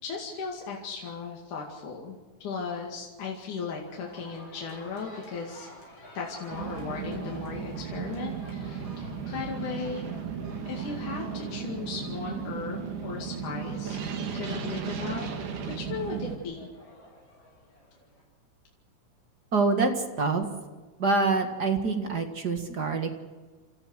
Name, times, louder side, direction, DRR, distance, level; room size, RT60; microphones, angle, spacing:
voice 1, 0.0-5.7 6.2-10.1 10.7-14.0 14.3-15.3 15.7-16.7, left 5 dB, 75° left, -1 dB, 3.8 m, -37 dB
sound 1, 3.8-18.2, left 1 dB, 35° left, 6.9 m, -50 dB
sound 2, 6.5-16.4, right 7 dB, 75° right, 3.4 m, -35 dB
voice 2, 19.5-20.5 21.0-23.2, right 3 dB, 40° right, 5 dB, 1.9 m, -26 dB
29.0 x 14.0 x 6.5 m, 1.4 s
omnidirectional pair, 3.6 m